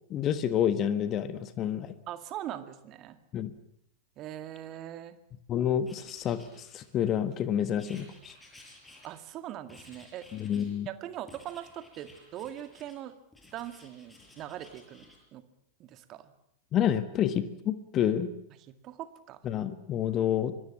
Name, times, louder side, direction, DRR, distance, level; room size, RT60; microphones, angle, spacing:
voice 1, 0.1-1.9 3.3-3.5 5.5-8.3 10.3-10.9 16.7-18.3 19.4-20.5, left 9 dB, 30° left, 12 dB, 1.5 m, -29 dB
voice 2, 2.1-3.2 4.2-5.2 9.0-10.3 10.9-13.1 13.5-15.1 15.3-15.4 15.8-16.3 18.8-19.4, right 12 dB, 35° right, 9 dB, 2.1 m, -41 dB
Writing, 5.8-7.2 7.8-9.4 9.7-10.8 11.3-13.0 13.3-15.2, left 2 dB, 10° left, 7.1 m, -55 dB
25.5 x 21.0 x 7.4 m, 0.73 s
figure-of-eight pair, 90°, 0 cm